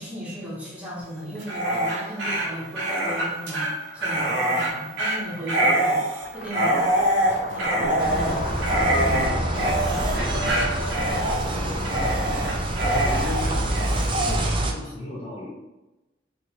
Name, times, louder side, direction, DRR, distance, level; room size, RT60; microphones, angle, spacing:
voice 1, 0.0-6.9 7.5-9.2, equal, 5° right, -7 dB, 0.9 m, -35 dB
Dog, 1.4-14.4, right 1 dB, 70° right, 0.7 m, -25 dB
sound 1, 6.2-14.5, left 2 dB, 80° left, 0.4 m, -35 dB
sound 2, 8.0-14.7, right 1 dB, 25° right, 0.3 m, -26 dB
voice 2, 10.1-12.5 13.1-15.5, left 1 dB, 30° left, -8 dB, 0.6 m, -37 dB
2.9 x 2.5 x 2.8 m, 1.1 s
head